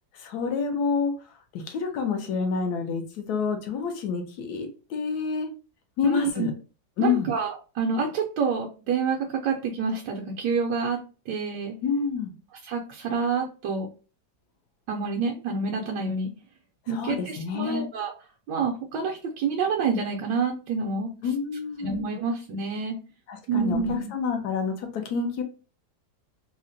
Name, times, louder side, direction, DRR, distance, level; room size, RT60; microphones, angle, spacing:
voice 1, 0.1-1.1 1.5-5.5 6.0-6.5 7.0-7.3 11.8-12.3 16.9-17.9 21.2-22.0 23.3-25.4, left 5 dB, 70° left, 5 dB, 1.1 m, -28 dB
voice 2, 6.0-6.5 7.0-11.0 11.3-11.7 12.6-13.9 14.9-16.3 16.9-18.1 18.5-21.1 21.8-22.9 23.5-24.1, right 5 dB, 80° right, -1 dB, 1.2 m, -27 dB
3.7 x 2.1 x 2.5 m, 0.34 s
omnidirectional pair, 1.9 m